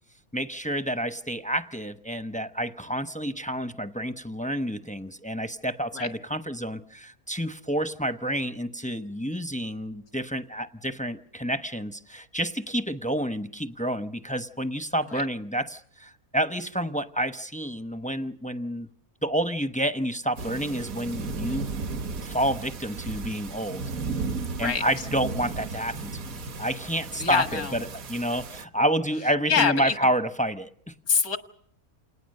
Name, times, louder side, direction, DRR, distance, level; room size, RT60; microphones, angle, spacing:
voice 1, 0.3-18.9 19.2-21.7 22.2-23.8 24.6-30.9, right 1 dB, 10° left, 10 dB, 0.5 m, -29 dB
sound 1, 20.4-28.6, right 4 dB, 70° right, 1.6 m, -35 dB
voice 2, 24.5-24.8 27.2-27.7 29.5-29.9 31.1-31.4, left 6 dB, 80° left, 8 dB, 2.1 m, -24 dB
28.0 x 19.5 x 6.6 m, 0.63 s
omnidirectional pair, 1.5 m